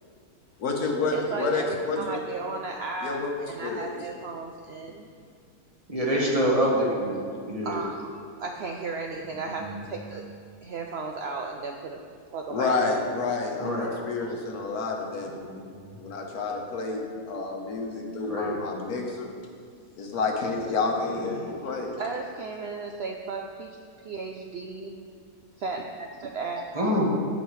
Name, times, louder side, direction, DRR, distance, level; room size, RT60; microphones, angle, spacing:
voice 1, 0.6-2.2 3.0-3.3 3.6-4.0 12.5-15.5 16.0-19.3 20.0-22.0, left 3 dB, 90° left, 1 dB, 1.6 m, -29 dB
voice 2, 1.1-3.2 3.5-5.1 7.6-10.2 10.6-12.0 12.3-13.0 14.2-14.3 22.0-23.8 24.0-25.0 25.6-26.6, right 4 dB, 65° right, 2 dB, 0.6 m, -35 dB
voice 3, 5.9-7.2 7.5-7.8 9.6-9.8 13.6-13.9 15.4-15.8 18.3-18.5 21.2-21.4 26.7-27.1, equal, 25° right, -4 dB, 1.4 m, -26 dB
15.5 x 5.1 x 3.2 m, 2.1 s
omnidirectional pair, 1.5 m